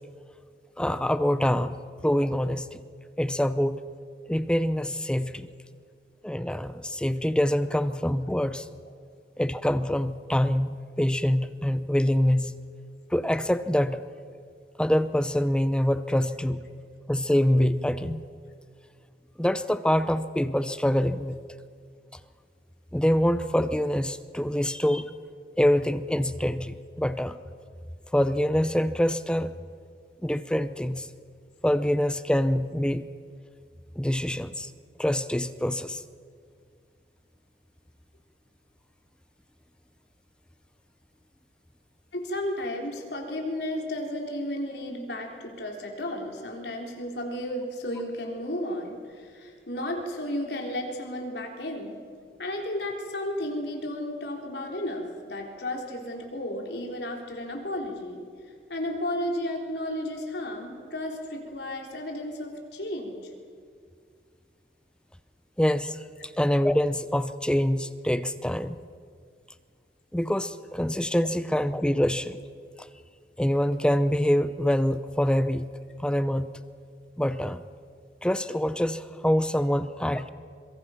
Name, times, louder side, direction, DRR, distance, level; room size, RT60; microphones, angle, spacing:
voice 1, 0.8-2.8 3.2-3.8 4.3-5.5 6.2-8.7 9.4-12.6 13.1-14.0 14.8-16.7 17.1-18.2 19.4-21.4 22.9-25.1 25.6-27.4 28.1-29.5 30.2-31.1 31.6-33.0 34.0-34.7 35.0-36.0 65.6-66.0 66.4-68.8 70.1-72.4 73.4-75.7 76.0-76.5 77.2-77.6 78.2-80.3, equal, 5° left, 12 dB, 0.6 m, -25 dB
voice 2, 42.1-52.0 52.4-58.2 58.7-63.2 66.2-66.3, left 1 dB, 75° left, 1 dB, 3.8 m, -33 dB
25.5 x 23.0 x 5.8 m, 2.1 s
head